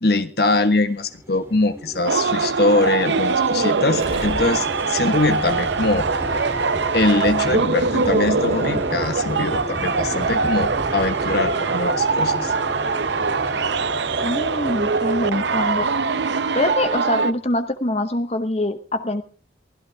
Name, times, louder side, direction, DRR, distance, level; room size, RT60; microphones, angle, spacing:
voice 1, 0.0-6.1 6.9-12.5, left 2 dB, 60° left, 9 dB, 1.4 m, -22 dB
sound 1, 0.7-17.3, equal, 15° right, 2.8 m, -36 dB
sound 2, 2.0-17.3, right 4 dB, 70° right, 0.7 m, -22 dB
Gurgling, 3.9-11.5 11.8-11.9, equal, 40° right, 6.1 m, -34 dB
voice 2, 14.2-15.9 16.5-19.2, left 1 dB, 35° left, 9 dB, 0.9 m, -24 dB
23.0 x 14.0 x 3.5 m, 0.36 s
head